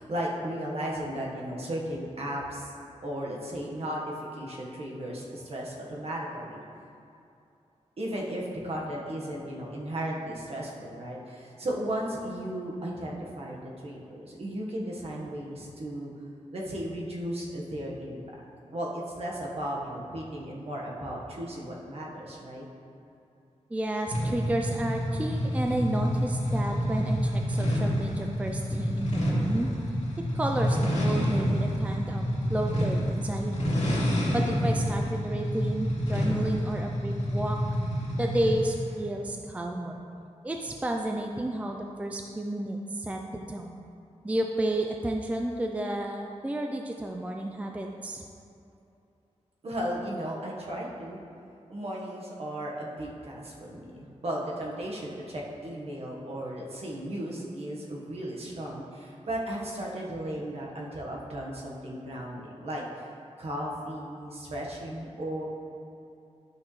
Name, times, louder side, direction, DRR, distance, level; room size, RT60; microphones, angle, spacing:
voice 1, 0.0-2.7 3.0-6.6 8.0-16.1 16.5-18.4 18.7-22.7 49.6-51.2 51.7-62.8 63.4-65.4, right 1 dB, 55° right, -3 dB, 1.3 m, -35 dB
voice 2, 23.7-29.7 30.3-32.2 32.5-33.8 34.3-37.6 38.2-40.1 40.4-43.9 44.2-48.2, right 1 dB, 10° right, 2 dB, 0.4 m, -31 dB
sound 1, 24.1-38.8, equal, 75° left, 1.9 m, -28 dB
11.5 x 6.0 x 3.2 m, 2.7 s
wide cardioid pair, 145°, 12 cm